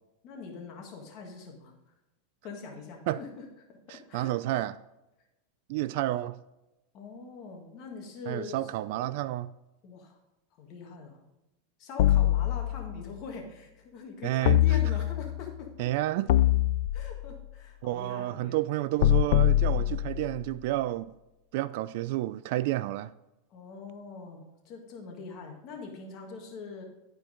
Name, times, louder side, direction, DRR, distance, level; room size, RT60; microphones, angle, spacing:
voice 1, 0.2-1.9 2.4-4.3 6.9-8.8 9.8-10.2 10.6-11.2 11.8-15.9 16.9-18.6 19.6-20.0 23.5-26.8, left 4 dB, 45° left, 1.9 m, -43 dB
voice 2, 3.9-4.8 5.7-6.4 8.3-9.5 14.2-14.6 15.8-16.3 17.8-21.1 21.5-23.1, right 15 dB, 60° right, 0.3 m, -30 dB
sound 1, 12.0-13.1 14.5-15.4 16.3-17.4 19.0-20.4, left 14 dB, 65° left, 0.3 m, -24 dB
12.0 x 4.5 x 5.2 m
supercardioid pair, 135°, 0 cm